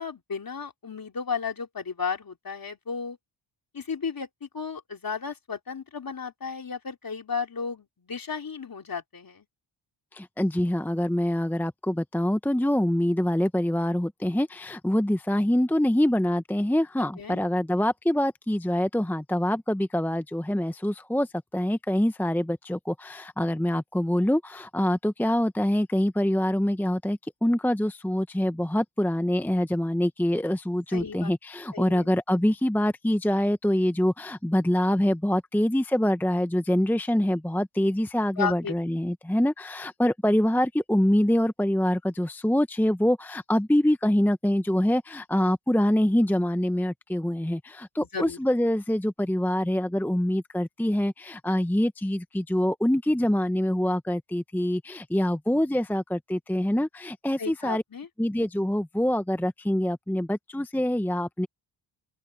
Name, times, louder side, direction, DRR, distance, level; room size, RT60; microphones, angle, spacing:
voice 1, 0.0-3.2 3.7-9.5 17.2-17.4 30.9-31.3 31.7-32.1 38.4-38.8 48.0-48.4 57.4-58.1, left 5 dB, 45° left, 3.5 m, -34 dB
voice 2, 10.1-21.3 21.5-57.8 58.2-61.5, left 1 dB, 5° left, 0.9 m, -25 dB
open air
cardioid pair, 65°, 48 cm